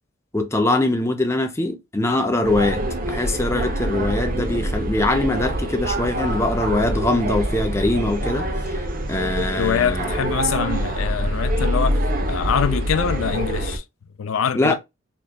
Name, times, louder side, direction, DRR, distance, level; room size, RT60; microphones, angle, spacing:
voice 1, 0.3-8.8 9.1-10.2 14.5-14.7, left 2 dB, 15° left, 0.6 m, -22 dB
sound 1, 2.4-13.8, right 1 dB, 45° right, 0.8 m, -25 dB
voice 2, 9.4-13.8 14.2-14.7, left 8 dB, 80° left, 0.4 m, -24 dB
4.4 x 3.1 x 2.2 m
head